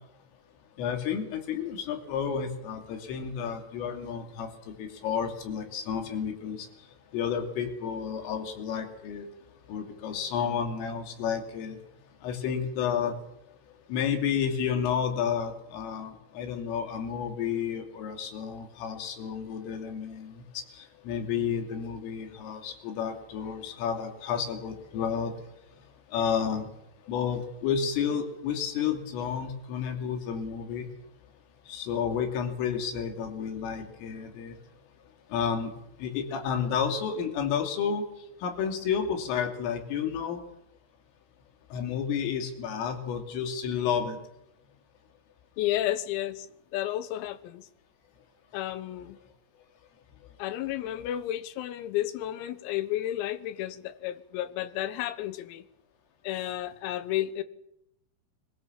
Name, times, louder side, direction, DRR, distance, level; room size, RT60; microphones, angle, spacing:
voice 1, 0.8-6.7 7.1-9.3 9.7-11.8 12.2-13.1 13.9-20.6 21.1-25.3 26.1-26.7 27.1-30.9 31.7-34.6 35.3-35.7 36.0-38.0 38.4-40.4 41.7-44.2, left 7 dB, 75° left, 5.3 m, -31 dB
voice 2, 45.6-46.5 46.7-47.7 48.5-49.2 50.4-55.7 56.2-57.4, left 13 dB, 90° left, 3.9 m, -32 dB
24.5 x 20.5 x 7.4 m
omnidirectional pair, 6.0 m